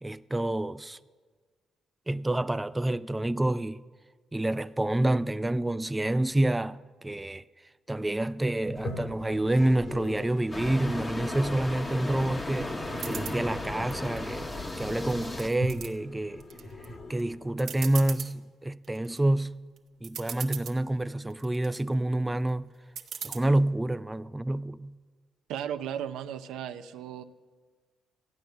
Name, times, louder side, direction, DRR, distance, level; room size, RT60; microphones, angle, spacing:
voice 1, 0.0-1.0 2.1-3.8 4.3-7.4 7.9-12.8 13.0-14.5 14.8-16.4 16.8-19.6 20.0-22.7 23.2-25.0, right 1 dB, 10° right, 0.3 m, -28 dB
Toilet flush, 8.6-17.7, left 1 dB, 55° left, 1.9 m, -42 dB
sound 1, 10.5-15.5, left 2 dB, 20° left, 1.0 m, -35 dB
sound 2, 13.0-13.4 13.9-14.7 15.1-15.9 16.4-16.9 17.2-17.3 17.6-18.3 18.8-19.2 19.8-19.9 20.0-20.8 21.3-21.8 23.0-23.4, right 7 dB, 65° right, 1.0 m, -39 dB
voice 2, 25.5-27.2, right 9 dB, 90° right, 0.6 m, -35 dB
14.5 x 9.2 x 6.8 m
cardioid pair, 90°, 0 cm